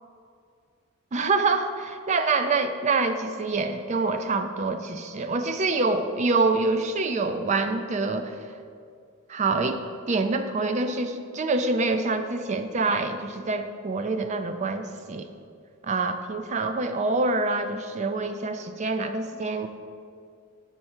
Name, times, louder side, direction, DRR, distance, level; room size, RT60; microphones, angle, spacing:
voice 1, 1.1-8.3 9.3-9.8 10.1-15.3 15.8-19.7, right 3 dB, 30° right, 8 dB, 0.3 m, -26 dB
7.7 x 4.6 x 4.3 m, 2.3 s
head